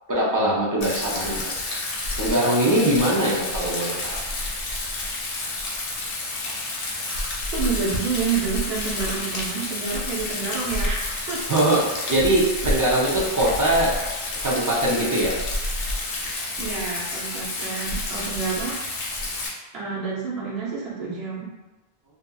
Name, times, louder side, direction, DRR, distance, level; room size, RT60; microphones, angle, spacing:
voice 1, 0.1-1.5 2.2-4.2 11.5-13.9 14.4-15.4, right 1 dB, 30° right, -6 dB, 0.4 m, -22 dB
Rain, 0.8-19.5, left 2 dB, 65° left, 0.8 m, -29 dB
voice 2, 7.5-11.4 16.6-18.8 19.7-21.5, right 5 dB, 75° right, -6 dB, 1.0 m, -29 dB
2.8 x 2.4 x 2.2 m, 1.1 s
omnidirectional pair, 1.0 m